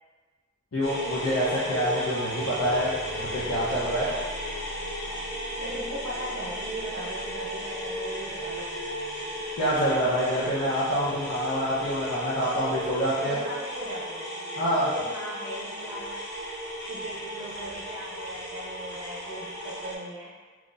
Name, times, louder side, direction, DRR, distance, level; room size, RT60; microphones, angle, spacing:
voice 1, 0.7-4.1 9.6-13.4 14.6-14.9, equal, 75° left, -11 dB, 0.8 m, -26 dB
sound 1, 0.8-20.0, equal, 55° left, 1.1 m, -35 dB
voice 2, 5.6-8.8 13.2-16.2 16.9-20.3, equal, 30° right, -6 dB, 0.5 m, -38 dB
3.8 x 3.0 x 2.5 m, 1.4 s
head